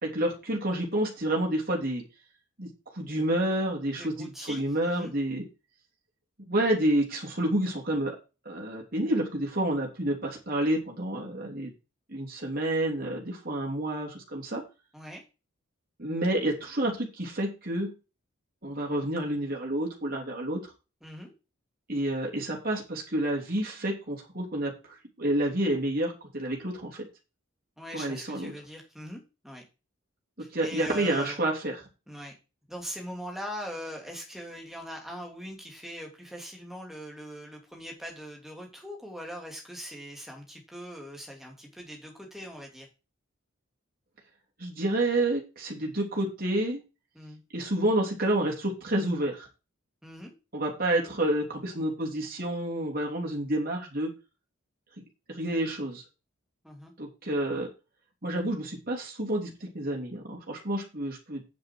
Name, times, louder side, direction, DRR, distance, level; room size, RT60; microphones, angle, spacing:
voice 1, 0.0-2.0 2.6-5.4 6.5-8.1 8.4-11.7 12.1-14.6 16.0-17.9 18.6-20.6 21.9-27.1 27.9-28.5 30.5-31.8 44.6-46.8 47.5-49.5 50.5-54.1 55.3-56.0 57.0-57.7 58.2-61.5, right 1 dB, 45° right, -1 dB, 3.3 m, -29 dB
voice 2, 3.9-5.1 14.9-15.2 21.0-21.3 27.8-29.6 30.4-31.4 32.1-32.3 32.7-42.9 47.1-47.4 50.0-50.3 56.6-56.9, equal, ahead, 0 dB, 2.7 m, -41 dB
9.1 x 7.5 x 4.6 m, 0.29 s
head